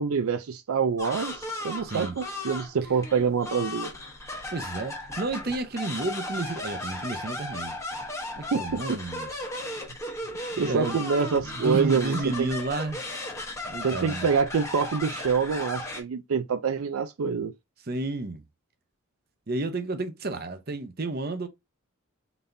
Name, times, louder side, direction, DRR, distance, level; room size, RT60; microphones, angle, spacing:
voice 1, 0.0-3.9 8.5-9.0 10.6-12.5 13.8-17.5, right 6 dB, 80° right, 0.4 m, -26 dB
sound 1, 1.0-16.0, left 1 dB, 15° left, 0.9 m, -36 dB
voice 2, 1.8-2.1 4.5-7.8 8.4-9.5 10.6-11.0 11.4-13.0 13.6-14.3 17.9-18.4 19.5-21.5, right 2 dB, 45° right, 0.7 m, -31 dB
4.0 x 3.5 x 2.6 m
head